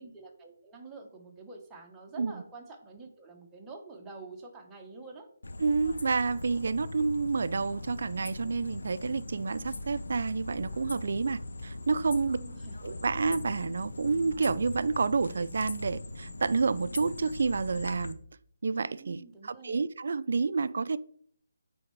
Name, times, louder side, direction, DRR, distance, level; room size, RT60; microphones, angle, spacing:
voice 1, 0.0-5.3 12.2-12.8 19.0-19.8, right 3 dB, 10° right, 1.0 m, -47 dB
sound 1, 5.4-18.1, left 2 dB, 90° left, 0.8 m, -41 dB
voice 2, 5.6-12.4 12.8-18.2 18.6-21.0, right 4 dB, 60° right, 0.4 m, -29 dB
sound 2, 12.7-17.6, left 4 dB, 40° left, 0.5 m, -50 dB
8.9 x 3.5 x 4.6 m
hypercardioid pair, 165°, 0 cm